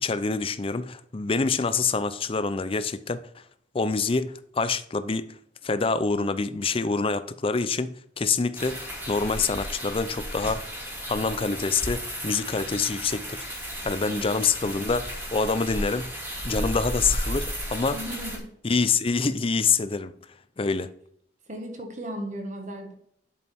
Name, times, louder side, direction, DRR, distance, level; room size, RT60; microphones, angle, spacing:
voice 1, 0.0-3.2 3.7-5.3 5.6-10.6 11.1-13.4 13.8-16.1 16.4-18.0 18.6-20.1 20.6-20.9, left 4 dB, 30° left, 0.5 m, -26 dB
sound 1, 8.5-18.4, equal, 15° right, 2.4 m, -34 dB
voice 2, 14.0-14.4 17.9-18.5 20.7-20.8 21.5-22.9, equal, 45° right, 1.7 m, -36 dB
8.5 x 6.8 x 3.5 m
head